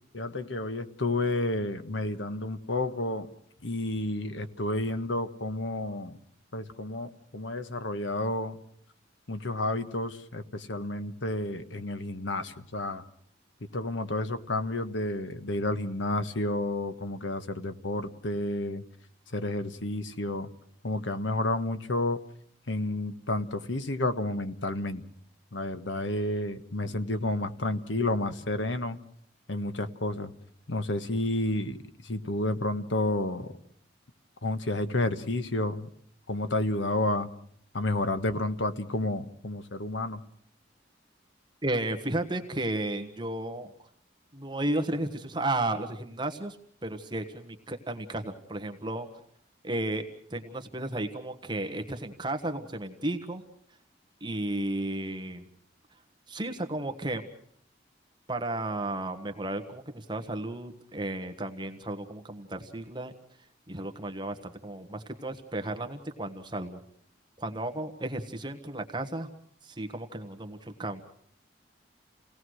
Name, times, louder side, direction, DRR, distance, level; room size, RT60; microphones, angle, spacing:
voice 1, 0.1-3.3 3.6-6.2 6.5-8.6 9.3-13.0 13.7-18.8 19.3-20.5 20.8-22.2 22.7-25.0 25.5-29.0 29.5-30.3 30.7-33.5 34.4-35.9 36.3-37.3 37.7-40.2, left 2 dB, 85° left, 10 dB, 1.4 m, -30 dB
voice 2, 41.6-43.7 44.3-46.6 46.8-49.1 49.6-53.4 54.2-55.5 56.3-57.2 58.3-63.1 63.7-66.8 67.4-69.3 69.6-71.0, right 1 dB, 25° right, 6 dB, 1.3 m, -33 dB
29.0 x 18.0 x 6.4 m, 0.64 s
head